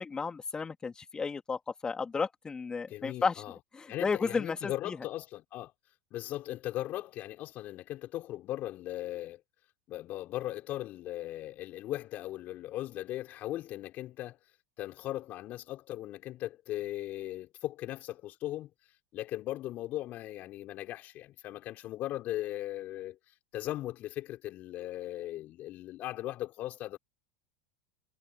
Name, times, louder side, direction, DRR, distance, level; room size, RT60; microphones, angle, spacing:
voice 1, 0.0-3.4 3.7-5.0, left 5 dB, 20° left, 3.3 m, -33 dB
voice 2, 2.9-3.6 3.9-5.7 6.1-9.4 9.9-14.4 14.8-18.7 19.1-23.2 23.5-27.0, left 14 dB, 50° left, 4.7 m, -38 dB
hypercardioid pair, 90°, 4 cm